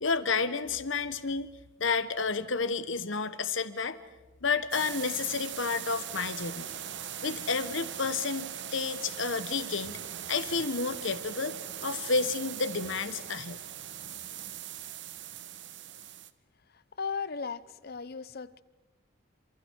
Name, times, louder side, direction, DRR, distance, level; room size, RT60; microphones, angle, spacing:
voice 1, 0.0-1.5 1.8-4.0 4.4-6.7 7.2-10.0 10.3-11.6 11.8-13.6, left 4 dB, 65° left, 12 dB, 1.2 m, -30 dB
sound 1, 4.7-16.3, right 10 dB, 60° right, 1.1 m, -40 dB
voice 2, 16.7-18.6, left 5 dB, 50° left, 17 dB, 0.8 m, -37 dB
28.5 x 27.5 x 4.7 m, 1.1 s
head